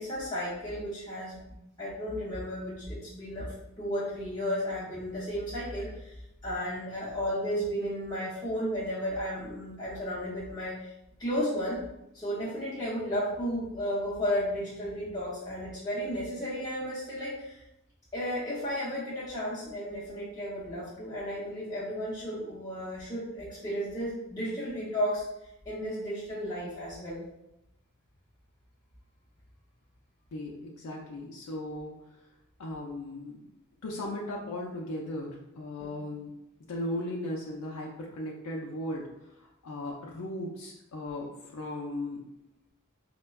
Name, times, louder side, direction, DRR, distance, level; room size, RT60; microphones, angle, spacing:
voice 1, 0.0-10.9 11.2-11.8 12.1-17.6 18.1-27.2 35.8-35.9, equal, 15° left, -9 dB, 0.6 m, -34 dB
voice 2, 30.3-32.2 32.6-33.4 33.8-36.3 36.7-42.2, left 1 dB, 90° left, -2 dB, 0.4 m, -37 dB
4.3 x 2.1 x 2.2 m, 0.88 s
head